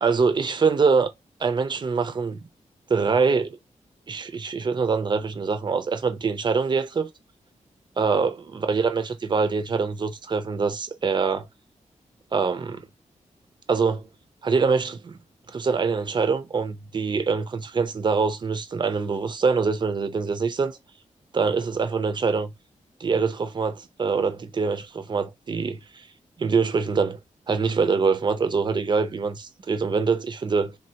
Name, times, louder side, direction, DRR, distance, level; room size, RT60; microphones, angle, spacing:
voice 1, 0.0-1.1 1.4-2.5 2.9-3.6 4.1-7.1 8.0-11.5 12.3-12.9 13.7-14.0 14.4-15.2 15.5-20.8 21.3-22.5 23.0-26.0 26.4-27.2 27.5-30.8, right 5 dB, 35° right, 0.5 m, -24 dB
3.2 x 2.2 x 2.8 m
wide cardioid pair, 150°, 13 cm